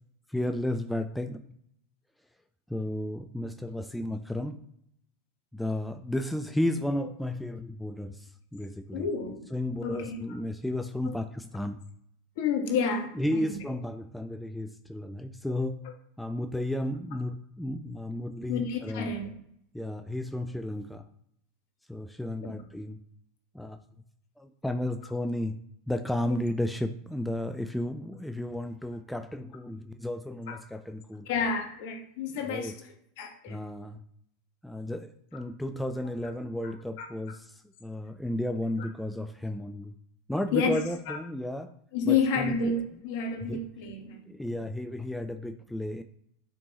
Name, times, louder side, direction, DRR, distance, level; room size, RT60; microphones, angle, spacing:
voice 1, 0.3-1.4 2.7-4.6 5.5-9.1 9.5-11.8 13.2-15.8 16.2-19.1 19.7-21.0 21.9-23.0 23.5-23.8 24.4-25.6 25.9-31.3 32.4-32.8 33.5-34.0 34.6-39.9 40.3-41.7 42.0-42.7 43.5-43.6 44.3-46.0, left 1 dB, 5° left, 7 dB, 0.5 m, -33 dB
voice 2, 8.9-9.4 9.8-10.2 11.0-11.1 12.4-13.6 18.5-19.3 22.4-22.6 26.2-26.4 30.5-30.6 31.2-32.7 33.2-33.6 36.6-36.7 37.0-37.1 40.5-41.2 41.9-44.3, left 5 dB, 55° left, 3 dB, 1.6 m, -30 dB
9.5 x 5.2 x 3.1 m, 0.72 s
figure-of-eight pair, 85°, 0 cm